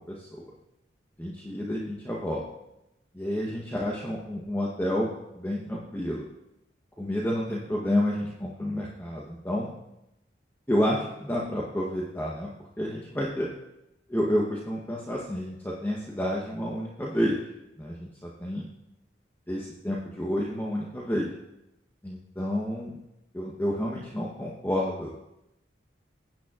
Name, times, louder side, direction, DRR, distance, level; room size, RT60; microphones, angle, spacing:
voice 1, 0.1-0.5 1.2-2.4 3.1-5.1 5.3-6.3 7.0-9.7 10.7-12.5 12.8-13.5 14.1-17.4 17.8-18.7 19.5-21.3 22.0-23.0 23.3-25.1, equal, 10° left, -4 dB, 0.9 m, -30 dB
16.5 x 9.1 x 2.4 m, 0.90 s
head